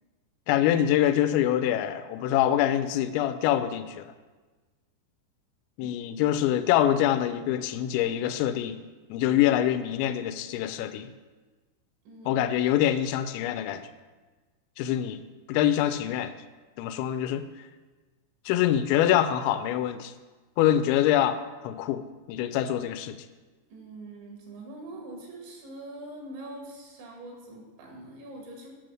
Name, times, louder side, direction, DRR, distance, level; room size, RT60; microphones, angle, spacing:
voice 1, 0.5-4.1 5.8-8.8 9.1-11.1 12.3-13.9 14.8-15.2 15.5-16.3 16.8-17.4 18.5-20.1 20.6-23.2, left 11 dB, 85° left, 11 dB, 2.9 m, -25 dB
voice 2, 12.1-12.5 23.7-28.7, right 1 dB, 80° right, 0 dB, 4.0 m, -43 dB
8.5 x 6.1 x 6.2 m, 1.3 s
omnidirectional pair, 5.2 m